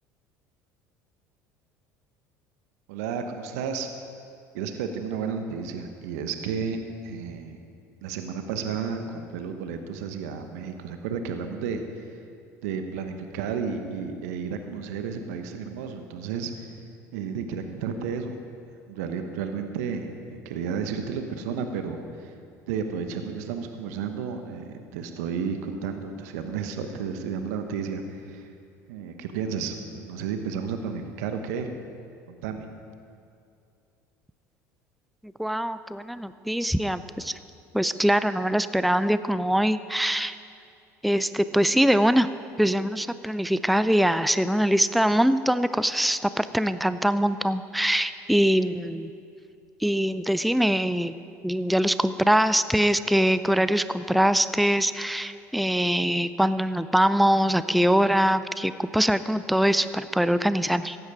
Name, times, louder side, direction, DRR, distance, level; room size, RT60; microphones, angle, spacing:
voice 1, 2.9-3.9 4.5-6.8 7.0-7.6 8.0-12.1 12.6-16.7 17.1-18.4 18.9-22.3 22.7-28.5 28.9-31.7 32.3-32.6, right 6 dB, 75° right, 6 dB, 1.1 m, -32 dB
voice 2, 35.4-37.3 37.7-40.4 41.0-42.3 42.6-49.1 49.8-51.1 51.4-61.0, equal, ahead, 13 dB, 0.4 m, -23 dB
15.5 x 11.0 x 4.9 m, 2.5 s
hypercardioid pair, 70°, 9 cm